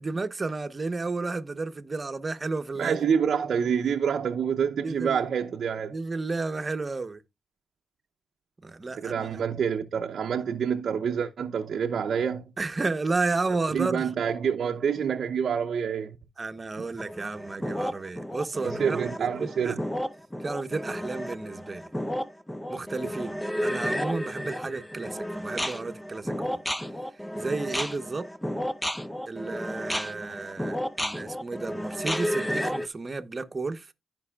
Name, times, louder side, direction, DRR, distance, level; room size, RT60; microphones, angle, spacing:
voice 1, 0.0-3.0 4.8-5.2 5.9-7.2 8.6-9.3 12.6-14.1 16.4-19.8 20.4-21.9 22.7-26.6 27.4-28.3 29.3-33.9, right 3 dB, 30° right, 0.9 m, -32 dB
voice 2, 2.8-6.0 8.9-12.5 13.7-16.2 16.8-16.9 18.6-19.8, right 7 dB, 65° right, 0.6 m, -27 dB
sound 1, 17.0-32.9, equal, 5° left, 0.7 m, -32 dB
15.0 x 5.4 x 2.3 m
cardioid pair, 65°, 0 cm